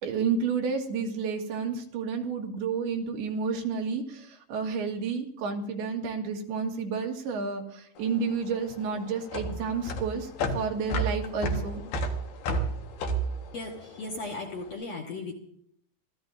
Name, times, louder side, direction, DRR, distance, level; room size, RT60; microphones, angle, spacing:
voice 1, 0.0-11.8, right 5 dB, 80° right, 2 dB, 3.7 m, -31 dB
sound 1, 8.0-14.5, right 1 dB, 80° left, 3.5 m, -31 dB
voice 2, 13.5-15.4, left 3 dB, 60° left, 0 dB, 1.9 m, -36 dB
25.0 x 16.0 x 2.7 m, 0.68 s
omnidirectional pair, 4.5 m